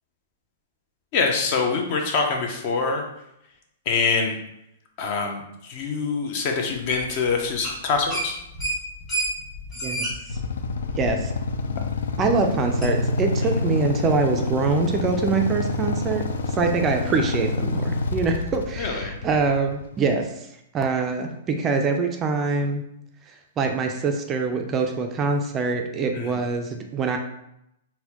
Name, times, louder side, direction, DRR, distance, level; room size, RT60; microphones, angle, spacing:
voice 1, 1.1-3.0 3.9-4.3 5.0-8.4 18.8-19.1 26.1-26.4, left 4 dB, 45° left, 3 dB, 0.6 m, -25 dB
sound 1, 6.9-7.3 7.5-7.8 8.1-11.5 11.9-12.0 12.8-12.9, right 1 dB, 20° left, 1.4 m, -29 dB
Motorcycle / Idling, 10.3-20.2, left 3 dB, 85° left, 0.3 m, -27 dB
voice 2, 11.0-11.3 12.2-16.2 16.5-20.3 20.7-22.8 23.6-27.2, right 4 dB, 20° right, 4 dB, 0.3 m, -24 dB
4.0 x 2.1 x 2.9 m, 0.82 s
hypercardioid pair, 145°, 0 cm